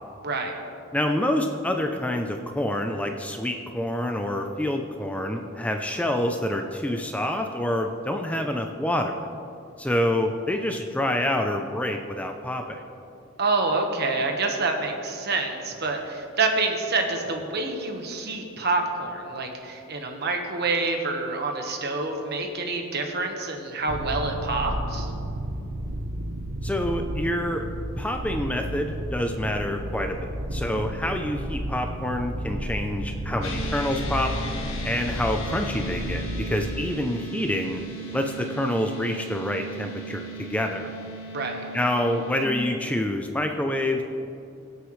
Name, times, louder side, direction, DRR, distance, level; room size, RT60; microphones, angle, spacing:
voice 1, 0.2-0.6 13.4-25.1 41.3-41.6, right 3 dB, 50° right, 3 dB, 1.3 m, -27 dB
voice 2, 0.9-9.2 9.8-12.8 26.6-27.6 28.0-34.3 34.8-37.8 38.1-40.9 41.7-44.0, left 1 dB, 5° left, 4 dB, 0.5 m, -27 dB
sound 1, 23.9-36.7, right 1 dB, 70° right, 0.9 m, -32 dB
sound 2, 33.4-42.5, right 1 dB, 85° left, 1.8 m, -37 dB
23.0 x 8.1 x 3.2 m, 2.7 s
head